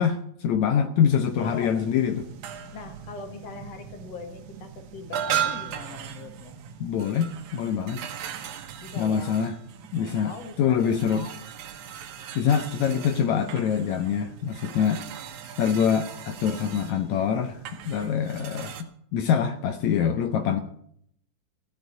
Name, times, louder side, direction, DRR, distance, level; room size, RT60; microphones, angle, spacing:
voice 1, 0.0-2.3 6.8-8.1 9.0-9.6 9.9-11.3 12.4-15.0 15.6-20.6, left 8 dB, 75° left, 9 dB, 1.7 m, -25 dB
sound 1, 1.0-18.8, right 9 dB, 80° right, 2.9 m, -37 dB
voice 2, 1.4-1.7 2.7-6.5 8.8-9.4 10.0-11.4, left 4 dB, 55° left, 5 dB, 2.7 m, -41 dB
15.5 x 6.8 x 9.3 m, 0.69 s
omnidirectional pair, 4.0 m